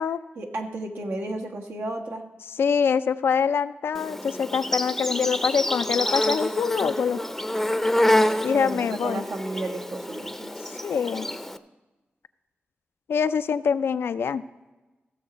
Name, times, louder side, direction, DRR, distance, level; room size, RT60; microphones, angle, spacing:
voice 1, 0.3-2.2 7.7-10.5, right 2 dB, 85° right, 1 dB, 1.4 m, -33 dB
voice 2, 2.6-7.2 8.4-9.2 10.7-11.3 13.1-14.4, left 6 dB, 90° left, 12 dB, 0.4 m, -25 dB
Insect, 3.9-11.6, left 1 dB, 5° left, 0.5 m, -27 dB
15.5 x 6.9 x 5.1 m, 1.1 s
cardioid pair, 70°, 4 cm